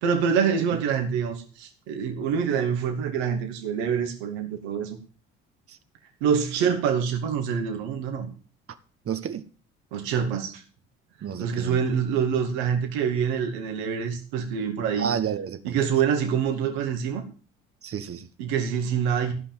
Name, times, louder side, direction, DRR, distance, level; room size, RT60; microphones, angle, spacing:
voice 1, 0.0-5.0 6.2-8.3 9.9-10.6 11.4-15.1 15.6-17.2 18.4-19.3, right 7 dB, 80° right, 2.6 m, -26 dB
voice 2, 9.1-9.4 11.2-11.8 15.0-15.8 17.8-18.3, right 8 dB, 45° right, 1.3 m, -30 dB
15.5 x 5.9 x 7.3 m
hypercardioid pair, 55°, 31 cm